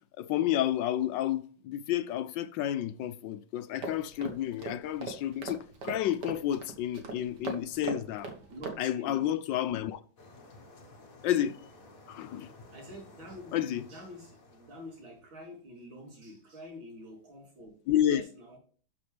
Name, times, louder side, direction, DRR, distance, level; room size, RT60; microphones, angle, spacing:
voice 1, 0.2-8.3 8.8-10.0 11.2-11.6 12.1-12.5 13.5-13.8 17.9-18.2, left 11 dB, 75° left, 1.2 m, -30 dB
sound 1, 3.8-8.8, right 4 dB, 60° right, 2.0 m, -41 dB
voice 2, 8.3-9.3 12.7-18.6, equal, 75° right, 4.1 m, -47 dB
sound 2, 10.2-15.2, left 2 dB, 45° left, 1.7 m, -54 dB
12.0 x 6.1 x 3.4 m
omnidirectional pair, 2.2 m